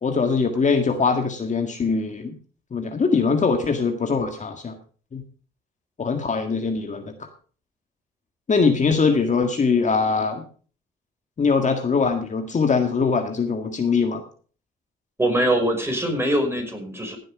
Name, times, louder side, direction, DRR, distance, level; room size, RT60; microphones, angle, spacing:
voice 1, 0.0-2.3 2.7-4.8 5.1-5.2 6.0-7.3 8.5-10.4 11.4-14.2, left 5 dB, 40° left, 6 dB, 1.7 m, -22 dB
voice 2, 15.2-17.2, right 1 dB, 10° right, 3 dB, 5.2 m, -22 dB
16.5 x 7.7 x 4.9 m, 0.41 s
cardioid pair, 90°, 20 cm